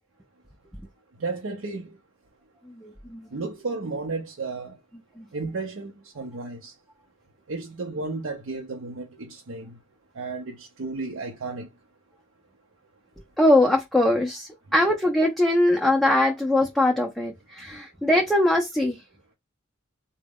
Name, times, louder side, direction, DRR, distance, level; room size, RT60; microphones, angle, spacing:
voice 1, 1.2-1.9 3.3-4.8 5.3-6.7 7.5-9.8 10.1-11.7, right 3 dB, 70° right, 0.6 m, -33 dB
voice 2, 2.7-3.3 5.2-5.3 13.4-19.0, left 1 dB, ahead, 0.4 m, -22 dB
3.8 x 2.1 x 3.5 m
head